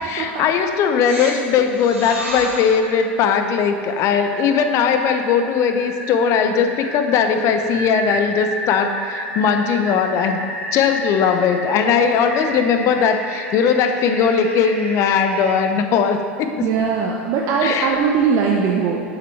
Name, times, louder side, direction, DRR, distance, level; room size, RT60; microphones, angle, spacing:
voice 1, 0.0-10.4 10.7-16.7 17.6-18.0, left 6 dB, 45° left, 7 dB, 0.6 m, -19 dB
sound 1, 1.1-15.5, right 1 dB, 85° right, 1.5 m, -32 dB
voice 2, 16.6-19.0, right 6 dB, 50° right, -1 dB, 0.6 m, -19 dB
6.9 x 6.7 x 3.3 m, 2.4 s
hypercardioid pair, 85°, 7 cm